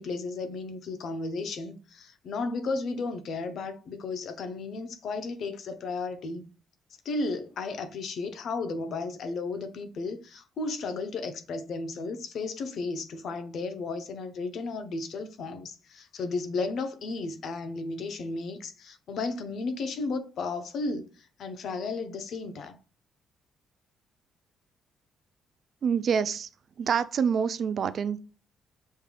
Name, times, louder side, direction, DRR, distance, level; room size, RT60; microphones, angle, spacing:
voice 1, 0.0-6.4 7.0-21.1 21.4-22.8, left 3 dB, 65° left, 0.7 m, -34 dB
voice 2, 25.8-26.5 26.8-28.2, right 7 dB, 55° right, 0.4 m, -26 dB
5.4 x 3.3 x 2.2 m
cardioid pair, 90°, 0 cm